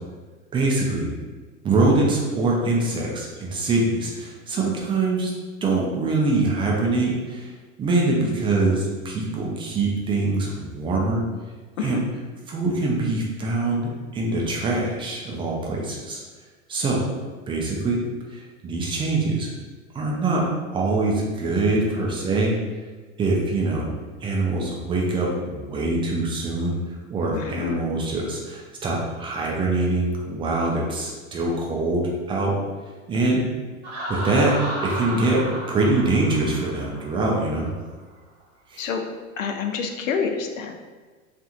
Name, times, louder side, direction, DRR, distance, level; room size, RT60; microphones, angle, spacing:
voice 1, 0.5-1.1 1.6-5.3 5.6-7.5 7.8-11.2 11.8-12.0 12.5-16.2 16.7-17.1 17.5-18.0 18.3-19.5 19.9-20.5 20.7-22.6 23.2-23.9 24.2-26.8 27.1-32.6 33.1-33.5 34.1-37.7 38.7-38.9, right 2 dB, 15° right, -2 dB, 0.3 m, -23 dB
voice 2, 27.3-27.8 38.8-39.0 39.4-40.8, left 6 dB, 75° left, 4 dB, 0.5 m, -28 dB
Laughter, 33.8-37.5, right 1 dB, 40° right, 0.9 m, -33 dB
2.9 x 2.5 x 2.4 m, 1.4 s
hypercardioid pair, 90°, 40 cm